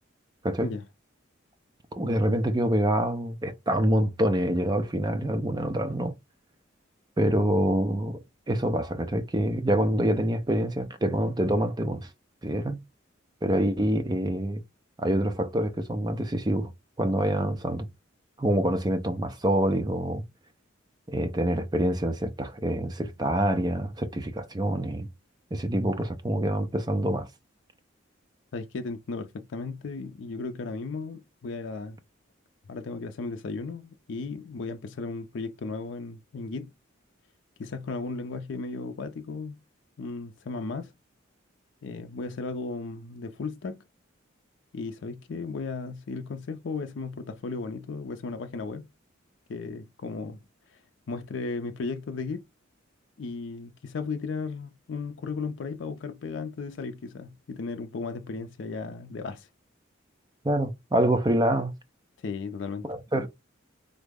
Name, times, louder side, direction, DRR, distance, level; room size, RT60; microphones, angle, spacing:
voice 1, 1.9-6.1 7.2-8.2 8.5-12.1 12.4-12.8 13.4-14.6 15.0-16.7 17.0-17.9 18.4-20.2 21.1-25.1 25.5-27.3 60.4-61.7 62.8-63.3, right 1 dB, 20° right, 0.5 m, -26 dB
voice 2, 28.5-32.0 32.7-36.7 37.6-39.6 40.0-40.9 41.8-43.8 44.7-48.9 49.5-50.4 50.7-50.8 51.1-52.4 53.2-59.5 62.2-62.9, left 4 dB, 65° left, 0.4 m, -35 dB
3.6 x 2.0 x 3.4 m
head